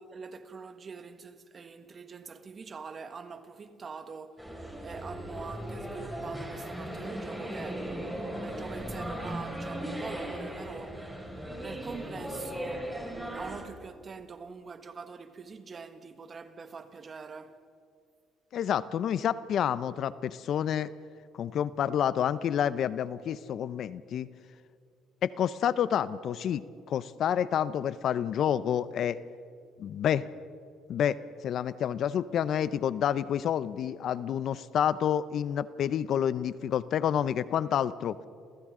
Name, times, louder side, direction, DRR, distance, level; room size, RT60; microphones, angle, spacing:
voice 1, 0.1-7.9 8.4-11.1 11.6-17.6, right 5 dB, 40° right, 1.5 m, -44 dB
sound 1, 4.4-13.6, equal, 5° right, 5.5 m, -37 dB
voice 2, 18.5-20.9 21.4-24.3 25.2-29.2 29.8-30.2 30.9-31.2 31.4-38.2, left 9 dB, 60° left, 0.6 m, -29 dB
30.0 x 28.0 x 3.8 m
supercardioid pair, 75°, 0 cm